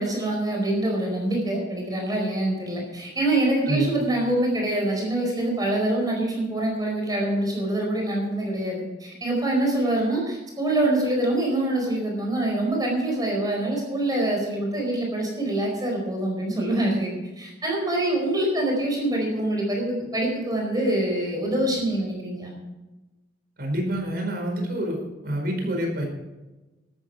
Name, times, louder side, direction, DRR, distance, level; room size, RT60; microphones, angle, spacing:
voice 1, 0.0-22.5, right 1 dB, 20° right, 0 dB, 4.6 m, -25 dB
voice 2, 23.6-26.1, right 1 dB, 55° right, 1 dB, 4.9 m, -27 dB
13.0 x 12.5 x 4.7 m, 1.1 s
head